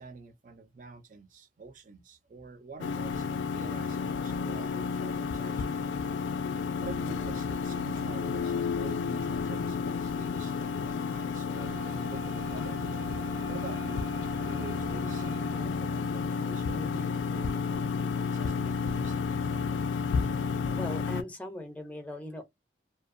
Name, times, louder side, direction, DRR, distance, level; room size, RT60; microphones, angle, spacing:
voice 1, 0.0-6.1 6.8-12.8 13.5-14.0 14.5-19.8, right 3 dB, 45° right, 0.4 m, -47 dB
sound 1, 2.8-21.2, left 5 dB, 90° left, 0.3 m, -31 dB
sound 2, 11.5-15.6, right 4 dB, 90° right, 0.6 m, -46 dB
voice 2, 20.7-22.4, left 1 dB, 10° left, 0.5 m, -39 dB
2.7 x 2.1 x 2.4 m
head